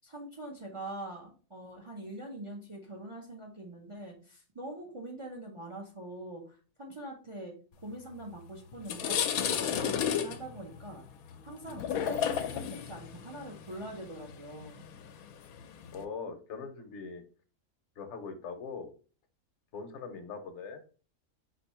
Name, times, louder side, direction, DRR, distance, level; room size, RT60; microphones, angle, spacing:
voice 1, 0.0-7.6 7.8-11.0 11.4-14.8, right 1 dB, 30° right, 1 dB, 0.6 m, -43 dB
sound 1, 8.2-8.4 8.7-16.0, left 8 dB, 85° left, 1.0 m, -33 dB
voice 2, 15.9-17.2 18.0-18.9 19.7-20.8, left 5 dB, 60° left, 8 dB, 1.0 m, -41 dB
4.4 x 2.7 x 4.2 m, 0.38 s
omnidirectional pair, 1.5 m